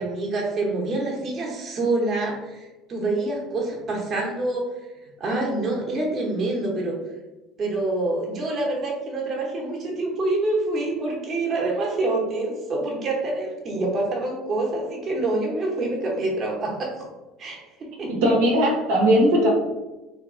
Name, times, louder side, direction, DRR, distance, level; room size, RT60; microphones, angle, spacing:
voice 1, 0.0-4.7 5.2-7.0 7.6-17.1 17.4-18.2 18.6-18.7, right 2 dB, 40° right, -2 dB, 1.0 m, -26 dB
voice 2, 18.1-19.5, equal, 85° right, -2 dB, 1.0 m, -19 dB
3.0 x 2.3 x 3.7 m, 1.1 s
supercardioid pair, 105°, 0 cm